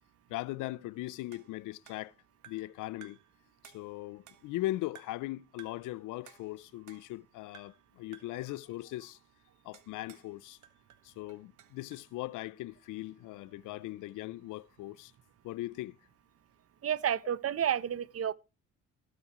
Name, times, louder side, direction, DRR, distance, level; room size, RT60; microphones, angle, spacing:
voice 1, 0.3-2.1 2.5-3.2 3.6-9.2 9.6-10.6 11.0-15.1 15.4-16.0, left 17 dB, 90° left, 0.5 m, -39 dB
sound 1, 1.3-2.8 3.0-3.3 3.6-4.6 4.9-5.3 5.6-5.9 6.3-7.3 7.5-7.9 8.1-8.4 9.7-10.3 10.6-12.1, right 9 dB, 75° right, 1.6 m, -57 dB
voice 2, 16.8-18.3, right 9 dB, 50° right, 0.8 m, -30 dB
19.0 x 7.6 x 3.0 m
cardioid pair, 90°, 30 cm